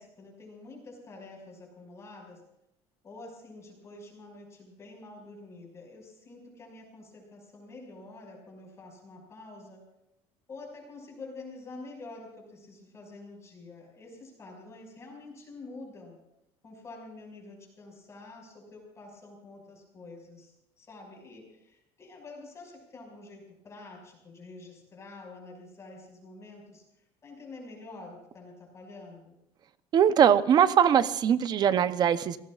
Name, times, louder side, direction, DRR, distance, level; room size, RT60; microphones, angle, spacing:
voice 1, 0.0-2.4 3.0-9.8 10.5-16.2 16.6-26.8 27.2-29.4, left 2 dB, 25° left, 1 dB, 5.9 m, -47 dB
voice 2, 29.9-32.4, right 8 dB, 35° right, 12 dB, 0.8 m, -21 dB
29.0 x 18.5 x 2.5 m, 0.84 s
cardioid pair, 160°, 12 cm